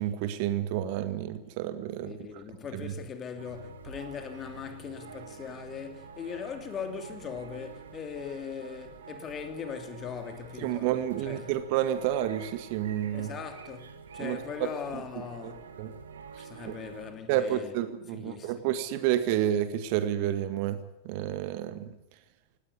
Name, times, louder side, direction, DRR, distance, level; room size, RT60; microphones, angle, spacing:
voice 1, 0.0-2.2 2.7-2.9 10.6-13.3 14.2-14.7 15.4-15.5 15.8-15.9 16.7-16.8 17.3-20.8 21.1-21.9, right 11 dB, 45° right, 1.9 m, -30 dB
voice 2, 2.0-10.9 11.2-11.6 13.1-15.7 16.4-17.7 18.1-18.7, left 7 dB, 25° left, 2.9 m, -40 dB
sound 1, 3.4-17.1, right 5 dB, 65° right, 2.4 m, -47 dB
19.5 x 17.5 x 8.5 m
figure-of-eight pair, 90°, 0 cm